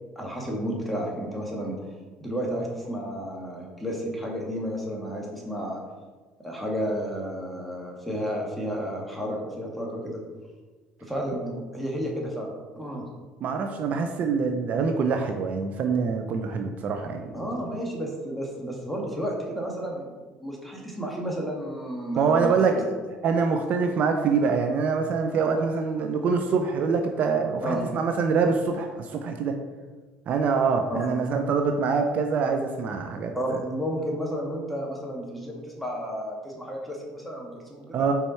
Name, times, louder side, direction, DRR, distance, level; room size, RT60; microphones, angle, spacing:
voice 1, 0.1-1.8 2.2-5.8 6.4-10.2 11.0-12.5 12.7-13.0 17.3-20.1 20.4-22.9 27.6-27.8 30.9-31.1 33.3-38.1, equal, ahead, -2 dB, 1.7 m, -32 dB
voice 2, 13.4-17.4 22.2-22.7 23.2-29.5 30.3-33.6 37.9-38.1, right 5 dB, 50° right, 5 dB, 0.6 m, -25 dB
5.5 x 4.3 x 4.4 m, 1.3 s
supercardioid pair, 90°, 3 cm